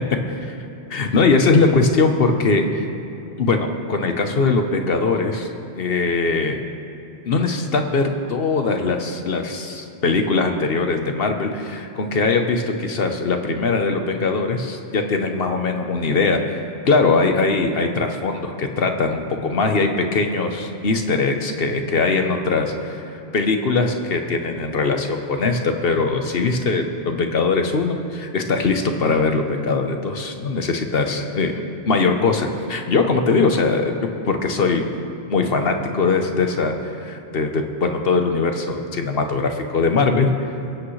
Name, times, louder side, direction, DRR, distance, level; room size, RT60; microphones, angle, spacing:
voice 1, 0.9-2.8 3.4-5.5 5.8-6.6 7.3-16.6 16.8-23.0 23.3-33.9 34.3-34.9 35.3-40.3, left 3 dB, 60° left, 5 dB, 1.1 m, -21 dB
25.5 x 8.5 x 3.2 m, 2.9 s
omnidirectional pair, 1.1 m